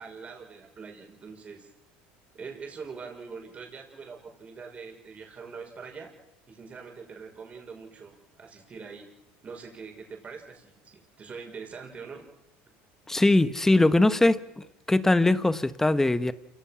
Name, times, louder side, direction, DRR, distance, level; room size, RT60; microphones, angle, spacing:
voice 1, 0.0-1.7 2.3-6.1 6.5-9.1 9.4-12.2, right 5 dB, 30° right, 6.0 m, -43 dB
voice 2, 13.1-14.4 14.9-16.3, left 2 dB, 10° left, 1.1 m, -21 dB
28.0 x 17.5 x 6.3 m
supercardioid pair, 110°, 5 cm